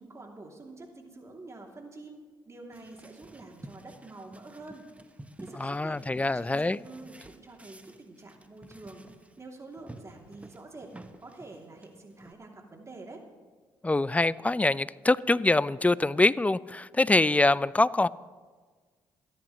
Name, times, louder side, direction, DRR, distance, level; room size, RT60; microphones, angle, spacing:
voice 1, 0.0-2.2 2.4-4.9 5.4-9.1 9.4-10.9 11.2-13.2, right 2 dB, 30° right, 2.9 m, -47 dB
sound 1, 2.7-9.4 9.7-12.3, right 1 dB, 15° right, 1.1 m, -51 dB
voice 2, 5.6-6.8 13.8-18.1, left 2 dB, 15° left, 0.4 m, -24 dB
28.0 x 10.5 x 3.2 m
hypercardioid pair, 50°, 10 cm